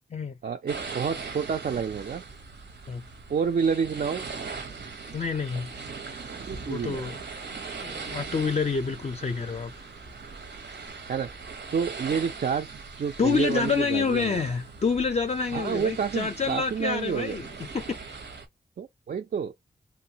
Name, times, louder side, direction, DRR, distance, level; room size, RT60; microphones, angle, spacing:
voice 1, 0.4-2.2 3.3-4.3 6.5-7.0 11.1-11.3 11.7-14.4 15.5-17.4 18.8-19.5, right 6 dB, 55° right, 0.4 m, -29 dB
sound 1, 0.7-18.5, right 4 dB, 75° right, 0.8 m, -40 dB
voice 2, 5.1-5.7 6.7-7.2 7.8-9.7 13.2-18.2, left 5 dB, 35° left, 0.4 m, -28 dB
3.2 x 2.1 x 2.7 m
wide cardioid pair, 70°, 18 cm